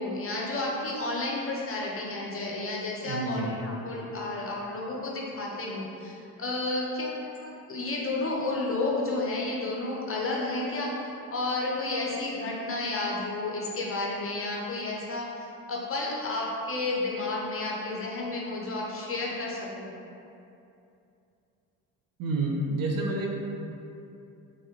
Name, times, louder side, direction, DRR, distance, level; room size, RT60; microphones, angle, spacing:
voice 1, 0.0-19.9, left 2 dB, 30° left, -3 dB, 0.6 m, -31 dB
voice 2, 3.0-3.5 22.2-23.3, right 2 dB, 50° right, 0 dB, 0.5 m, -28 dB
3.2 x 2.1 x 3.0 m, 2.7 s
hypercardioid pair, 65°, 46 cm